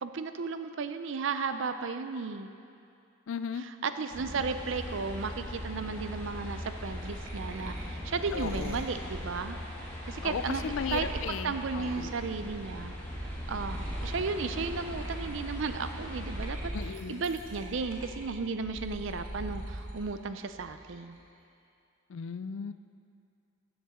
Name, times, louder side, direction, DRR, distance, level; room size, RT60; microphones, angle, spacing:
voice 1, 0.0-2.5 3.6-9.6 10.1-10.6 10.9-12.9 13.5-21.2, right 4 dB, 60° right, 9 dB, 0.5 m, -34 dB
voice 2, 3.3-3.6 8.3-8.8 10.2-12.1 16.7-17.2 22.1-22.7, left 6 dB, 65° left, 12 dB, 0.3 m, -36 dB
sound 1, 4.1-16.5, left 1 dB, 10° left, 1.5 m, -40 dB
sound 2, 6.7-12.7 13.1-20.1 20.5-21.1, right 1 dB, 90° right, 1.5 m, -41 dB
14.0 x 7.2 x 3.6 m, 2.5 s
head